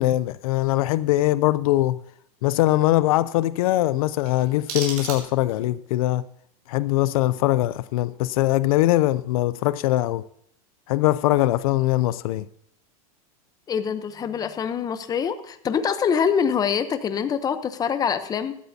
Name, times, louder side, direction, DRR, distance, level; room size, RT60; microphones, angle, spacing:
voice 1, 0.0-2.0 2.4-6.2 6.7-10.2 10.9-12.5, left 16 dB, 75° left, 0.4 m, -21 dB
sound 1, 4.2-5.7, right 5 dB, 75° right, 5.8 m, -35 dB
voice 2, 13.7-18.6, left 7 dB, 20° left, 0.8 m, -25 dB
16.0 x 12.5 x 2.7 m
supercardioid pair, 140°, 19 cm